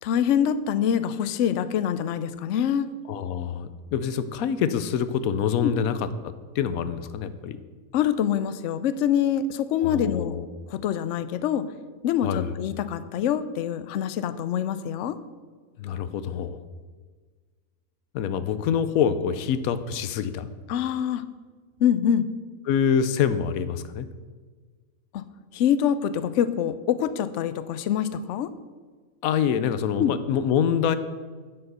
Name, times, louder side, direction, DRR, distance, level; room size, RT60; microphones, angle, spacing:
voice 1, 0.0-2.9 5.6-5.7 7.9-10.4 10.7-11.6 12.0-15.2 20.7-21.2 21.8-22.3 25.1-25.2 25.5-28.5 30.0-30.1, left 9 dB, 65° left, 13 dB, 0.8 m, -25 dB
voice 2, 3.1-7.6 9.8-10.5 12.2-12.5 15.8-16.6 18.1-20.5 22.7-24.1 29.2-31.0, left 8 dB, 90° left, 12 dB, 1.1 m, -26 dB
7.8 x 7.8 x 6.7 m, 1.5 s
omnidirectional pair, 1.5 m